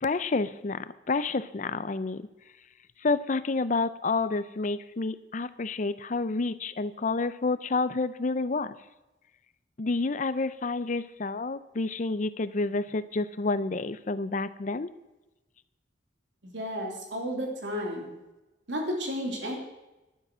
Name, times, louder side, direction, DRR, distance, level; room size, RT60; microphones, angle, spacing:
voice 1, 0.0-2.2 3.0-8.7 9.8-14.9, left 3 dB, 45° left, 15 dB, 0.5 m, -29 dB
voice 2, 16.4-18.1 18.7-19.6, equal, 80° right, 1 dB, 3.3 m, -32 dB
12.0 x 10.5 x 6.2 m, 1.0 s
head